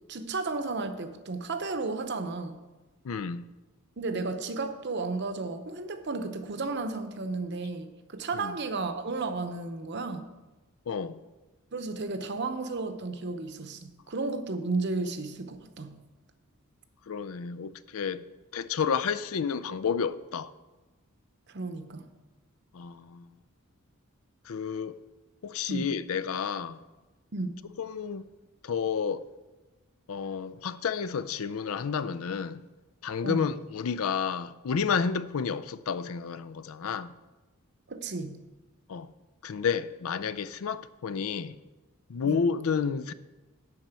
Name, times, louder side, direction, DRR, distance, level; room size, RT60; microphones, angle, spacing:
voice 1, 0.1-2.6 4.0-10.3 11.7-16.0 21.5-22.1 25.7-25.9 27.3-27.6 33.2-33.5 37.9-38.4 42.2-42.4, right 3 dB, 50° right, 0.8 m, -33 dB
voice 2, 3.0-3.4 8.3-8.5 10.9-11.2 17.1-18.2 18.5-20.5 22.7-23.3 24.5-25.0 25.4-26.8 27.8-28.2 28.6-29.2 30.1-32.6 33.0-37.1 38.9-39.1 39.4-41.6 42.1-43.1, left 6 dB, 75° left, 0.4 m, -30 dB
11.5 x 4.3 x 8.1 m
head